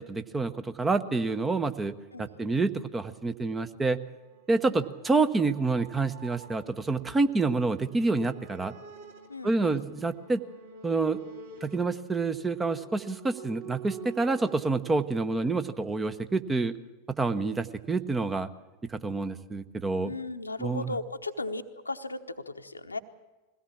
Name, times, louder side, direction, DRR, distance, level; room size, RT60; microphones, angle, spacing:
voice 1, 0.0-4.0 4.5-8.7 9.4-10.4 10.8-11.2 11.6-16.7 17.1-18.5 18.9-20.1 20.6-20.9, right 3 dB, 15° right, 10 dB, 1.0 m, -28 dB
sound 1, 3.9-14.6, right 5 dB, 60° right, 2.6 m, -48 dB
voice 2, 9.3-9.8 20.0-23.0, left 2 dB, 80° left, 7 dB, 1.1 m, -36 dB
22.0 x 17.0 x 7.3 m, 1.2 s
figure-of-eight pair, 90°, 0 cm